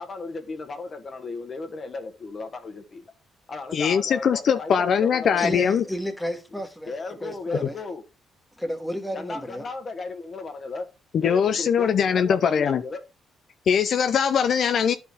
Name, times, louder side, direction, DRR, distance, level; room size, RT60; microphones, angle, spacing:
voice 1, 0.0-3.0 3.5-5.7 6.9-8.0 9.1-10.9 11.2-13.0, left 3 dB, 40° left, 1.4 m, -35 dB
voice 2, 3.7-5.8 11.1-12.8 13.7-14.9, left 7 dB, 60° left, 0.5 m, -21 dB
voice 3, 5.4-7.0 7.2-7.8 8.6-9.7, equal, ahead, 1.4 m, -31 dB
10.5 x 4.3 x 3.6 m
cardioid pair, 90°, 0 cm